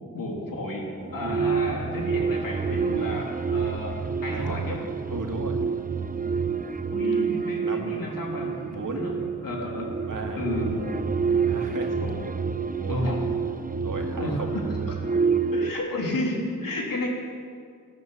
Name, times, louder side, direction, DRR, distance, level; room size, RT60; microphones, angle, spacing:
voice 1, 0.1-4.8 6.9-9.9 10.4-11.4 12.0-12.2 12.9-13.3 14.2-14.6 15.5-17.1, left 1 dB, 75° left, -2 dB, 3.4 m, -32 dB
sound 1, 1.0-15.7, right 5 dB, 25° right, 0.7 m, -28 dB
voice 2, 4.3-4.6 5.1-5.6 7.6-8.1 8.7-9.1 10.1-10.5 11.4-12.0 12.8-13.0 13.8-14.5, right 3 dB, 65° right, 3 dB, 2.1 m, -35 dB
13.5 x 13.0 x 7.4 m, 2.2 s
cardioid pair, 50°, 34 cm